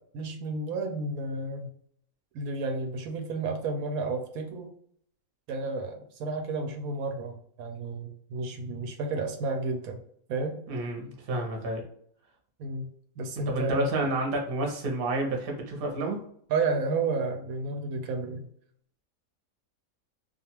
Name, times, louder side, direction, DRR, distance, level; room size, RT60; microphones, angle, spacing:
voice 1, 0.1-1.7 2.3-4.7 5.5-10.0 10.3-10.6 12.6-13.9 16.5-18.5, right 3 dB, 85° right, 5 dB, 1.0 m, -32 dB
voice 2, 10.7-11.8 13.4-16.2, right 2 dB, 50° right, 1 dB, 0.8 m, -29 dB
2.4 x 2.4 x 2.9 m, 0.64 s
omnidirectional pair, 1.5 m